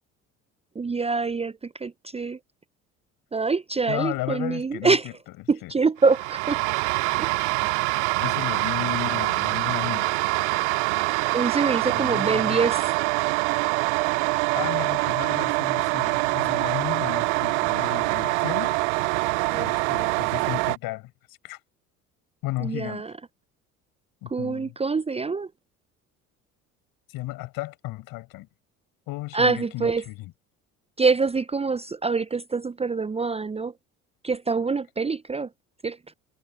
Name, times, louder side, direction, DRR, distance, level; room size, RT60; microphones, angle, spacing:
voice 1, 0.7-2.4 3.3-5.1 5.5-6.6 7.2-7.3 11.3-12.8 19.4-19.7 22.6-23.1 24.3-25.5 29.3-30.0 31.0-33.7 34.2-35.5 35.8-36.0, right 4 dB, 15° right, 0.9 m, -25 dB
voice 2, 3.9-5.1 5.6-5.7 7.8-7.9 8.2-10.1 11.9-12.6 14.5-18.8 19.5-21.6 22.4-23.0 24.2-24.8 27.1-28.5 29.1-30.3, left 19 dB, 55° left, 7.3 m, -34 dB
sound 1, 6.0-20.8, right 28 dB, 55° right, 0.6 m, -25 dB
figure-of-eight pair, 55°, 42 cm